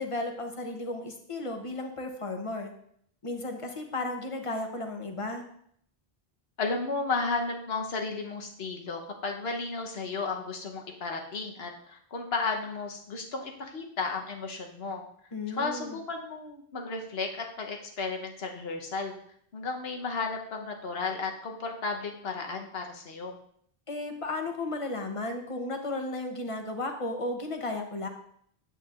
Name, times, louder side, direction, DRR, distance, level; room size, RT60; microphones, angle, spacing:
voice 1, 0.0-2.7 3.2-5.4 15.3-16.0 23.9-28.1, left 2 dB, 35° left, 4 dB, 0.9 m, -34 dB
voice 2, 6.6-15.0 15.5-19.1 19.5-23.4, left 4 dB, 75° left, 2 dB, 1.2 m, -33 dB
8.3 x 7.8 x 2.4 m, 0.66 s
omnidirectional pair, 1.1 m